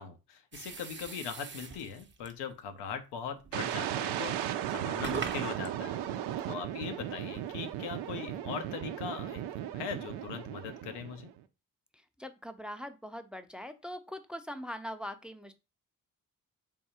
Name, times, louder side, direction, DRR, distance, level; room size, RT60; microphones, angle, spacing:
voice 1, 0.0-9.4 9.7-11.3, left 7 dB, 75° left, 8 dB, 0.9 m, -41 dB
sound 1, 0.5-2.5 3.4-3.6 4.2-4.3 4.9-8.1, right 5 dB, 25° right, 0.9 m, -43 dB
sound 2, 3.5-11.4, right 11 dB, 70° right, 0.7 m, -36 dB
voice 2, 11.9-15.5, equal, ahead, 10 dB, 0.6 m, -42 dB
3.7 x 2.3 x 4.3 m, 0.28 s
hypercardioid pair, 45°, 41 cm